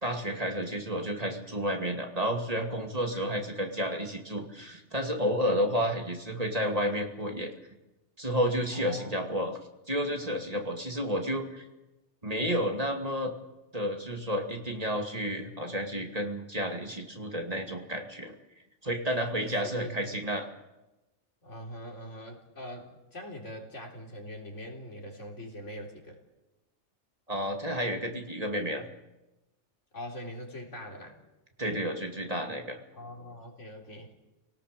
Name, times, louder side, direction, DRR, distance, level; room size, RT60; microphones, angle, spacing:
voice 1, 0.0-7.5 8.2-9.6 9.9-11.6 12.2-13.3 13.7-18.3 18.8-20.5 27.3-28.8 31.6-32.8, equal, 30° right, 3 dB, 2.6 m, -31 dB
voice 2, 8.7-9.2 19.4-20.2 21.4-26.2 29.9-31.2 32.9-34.1, equal, 85° left, 0 dB, 4.1 m, -43 dB
29.5 x 18.0 x 6.8 m, 1.0 s
omnidirectional pair, 1.2 m